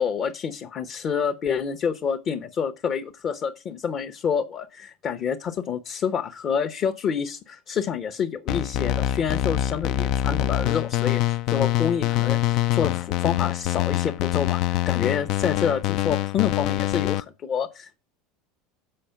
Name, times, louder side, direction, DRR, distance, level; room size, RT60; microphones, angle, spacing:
voice 1, 0.0-18.0, left 7 dB, 40° left, 0.8 m, -28 dB
sound 1, 8.5-17.2, left 14 dB, 60° left, 0.4 m, -25 dB
7.6 x 5.0 x 5.6 m
hypercardioid pair, 85°, 0 cm